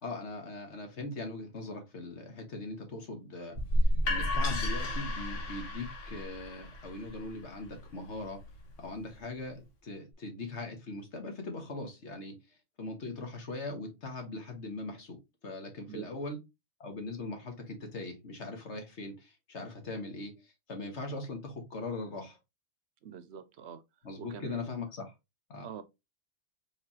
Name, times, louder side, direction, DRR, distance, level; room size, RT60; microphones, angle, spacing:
voice 1, 0.0-3.6 4.1-8.4 8.8-15.2 15.4-16.4 16.8-22.4 24.0-25.1 25.5-25.6, left 2 dB, 70° left, 1.7 m, -40 dB
sound 1, 3.5-9.3, left 1 dB, 85° left, 1.5 m, -32 dB
voice 2, 15.9-16.2 23.0-23.8 24.2-24.8 25.6-25.8, right 8 dB, 70° right, 0.9 m, -45 dB
4.8 x 3.5 x 2.9 m
omnidirectional pair, 1.2 m